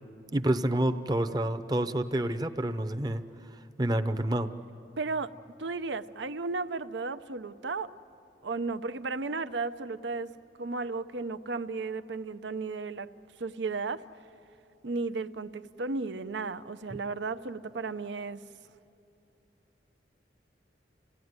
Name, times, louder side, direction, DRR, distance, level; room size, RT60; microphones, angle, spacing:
voice 1, 0.3-3.2 3.8-4.5, right 1 dB, 20° right, 9 dB, 0.7 m, -28 dB
voice 2, 5.0-5.3 5.6-7.9 8.4-13.1 13.4-14.0 14.8-18.4, right 3 dB, 85° right, 13 dB, 0.7 m, -34 dB
29.0 x 17.0 x 9.6 m, 2.7 s
head